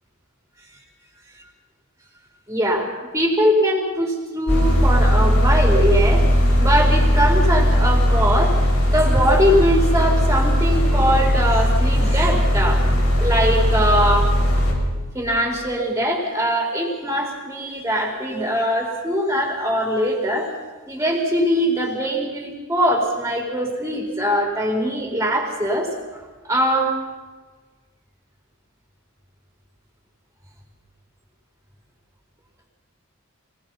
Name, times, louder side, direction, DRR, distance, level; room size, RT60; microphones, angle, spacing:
voice 1, 2.5-6.3 6.6-8.6 8.8-12.9 13.2-14.3 15.1-20.5 20.9-25.9 26.4-26.9, equal, 10° right, 1 dB, 4.2 m, -21 dB
sound 1, 4.5-14.7, equal, 80° left, 6.7 m, -18 dB
25.0 x 18.5 x 5.7 m, 1.3 s
head